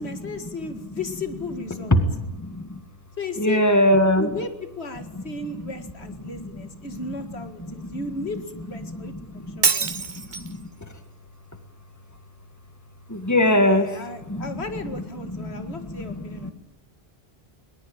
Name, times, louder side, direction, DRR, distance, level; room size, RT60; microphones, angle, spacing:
voice 1, 0.0-2.0 3.2-3.6 4.2-9.9 13.5-16.5, left 3 dB, 85° left, 8 dB, 2.3 m, -35 dB
voice 2, 1.9-2.7 3.4-4.3 6.4-6.6 7.1-7.2 7.7-8.0 8.8-10.7 13.1-13.9 14.3-14.6 15.3-16.5, left 1 dB, 15° left, 8 dB, 1.9 m, -23 dB
Shatter, 9.6-10.6, right 5 dB, 50° right, 1.2 m, -24 dB
21.0 x 20.5 x 8.9 m, 0.95 s
omnidirectional pair, 1.1 m